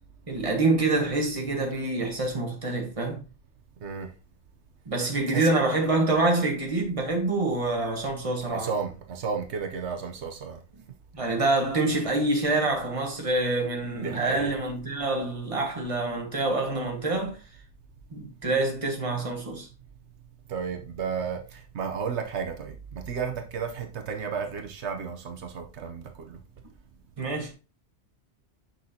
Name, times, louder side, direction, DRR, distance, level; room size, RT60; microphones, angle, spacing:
voice 1, 0.3-3.2 4.8-8.7 11.1-17.4 18.1-19.7 27.2-27.5, right 2 dB, 30° right, 1.5 m, -26 dB
voice 2, 8.5-10.6 13.9-14.5 20.5-26.4, right 6 dB, 80° right, 1.1 m, -33 dB
6.3 x 5.9 x 2.8 m
omnidirectional pair, 1.1 m